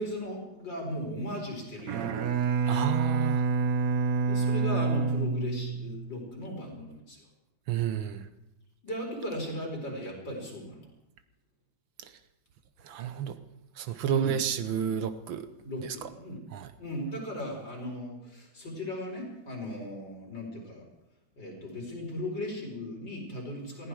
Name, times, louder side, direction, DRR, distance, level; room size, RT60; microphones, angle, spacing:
voice 1, 0.0-2.8 4.2-7.3 8.8-10.9 14.0-14.5 15.6-16.4 16.8-20.9 21.4-23.9, equal, 60° left, -1 dB, 5.4 m, -37 dB
Bowed string instrument, 1.8-6.1, right 5 dB, 55° right, 1.0 m, -27 dB
voice 2, 2.7-3.4 7.7-8.3 12.8-13.4 13.8-15.5 16.5-16.7, right 9 dB, 75° right, 11 dB, 1.7 m, -30 dB
19.5 x 15.5 x 4.8 m, 0.89 s
omnidirectional pair, 2.2 m